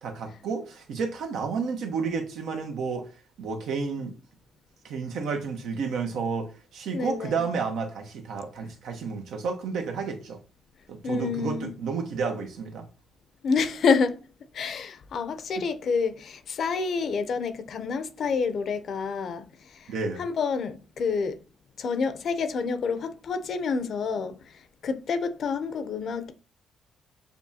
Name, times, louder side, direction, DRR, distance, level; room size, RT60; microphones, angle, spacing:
voice 1, 0.0-3.1 3.4-4.1 4.8-10.4 10.9-12.9 19.9-20.2, right 5 dB, 80° right, 1.0 m, -31 dB
voice 2, 6.9-7.4 11.0-11.7 13.4-14.2 14.5-19.4 19.7-19.9 20.2-21.4 21.8-24.5 24.8-26.3, left 5 dB, 60° left, 0.6 m, -28 dB
6.9 x 2.4 x 2.8 m
cardioid pair, 90°, 0 cm